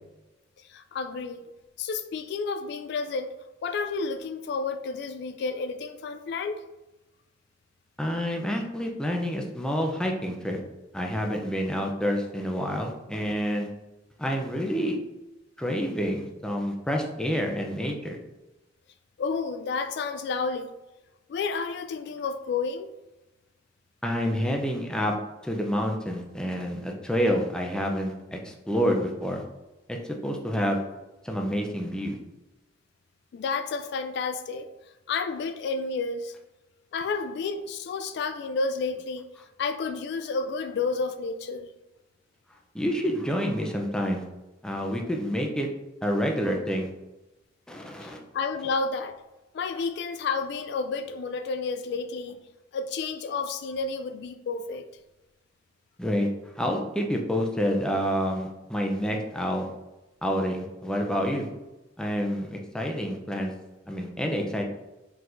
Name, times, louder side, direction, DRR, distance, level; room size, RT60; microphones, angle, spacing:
voice 1, 0.6-1.4 1.8-3.3 3.6-6.6 19.2-20.7 21.3-22.9 33.3-34.7 35.1-36.3 36.9-39.3 39.6-41.7 48.0-49.2 49.5-52.4 52.7-54.8, left 4 dB, 65° left, 10 dB, 0.3 m, -31 dB
voice 2, 8.0-10.6 10.9-13.7 14.2-15.0 15.6-18.2 24.0-25.2 25.4-29.4 29.9-30.8 31.2-32.2 42.7-44.2 44.6-45.7 46.0-46.9 47.7-48.2 56.0-56.3 56.6-59.7 60.2-61.5 62.0-63.5 63.9-64.6, equal, 5° left, 1 dB, 0.5 m, -28 dB
4.6 x 3.9 x 2.5 m, 1.0 s
head